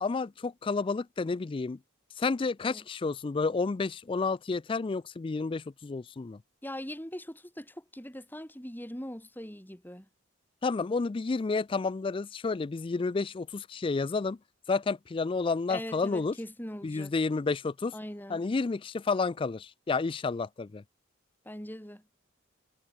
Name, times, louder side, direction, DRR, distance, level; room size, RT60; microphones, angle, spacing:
voice 1, 0.0-1.8 2.2-6.4 10.6-14.4 14.7-16.3 16.8-17.9 18.3-20.8, left 4 dB, 25° left, 0.3 m, -30 dB
voice 2, 6.6-10.1 15.7-17.1 17.9-18.4 21.4-22.0, equal, 10° left, 4.5 m, -41 dB
head